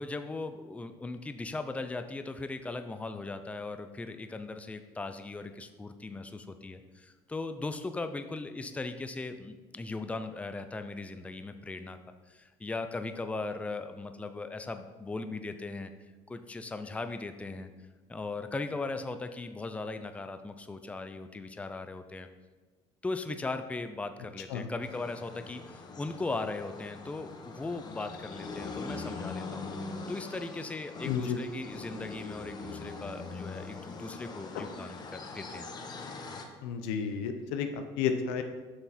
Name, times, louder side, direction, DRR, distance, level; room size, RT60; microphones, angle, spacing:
voice 1, 0.0-12.0 12.3-15.9 16.3-17.7 18.1-22.3 23.0-29.6 30.1-35.7, left 3 dB, 10° left, 9 dB, 0.5 m, -38 dB
Orla da Faceira pela Manhã, 24.8-36.4, left 3 dB, 35° left, 1.0 m, -42 dB
voice 2, 31.0-31.4 34.5-34.7 36.6-38.4, left 7 dB, 90° left, 7 dB, 0.8 m, -32 dB
7.8 x 5.9 x 4.3 m, 1.3 s
cardioid pair, 105°, 12 cm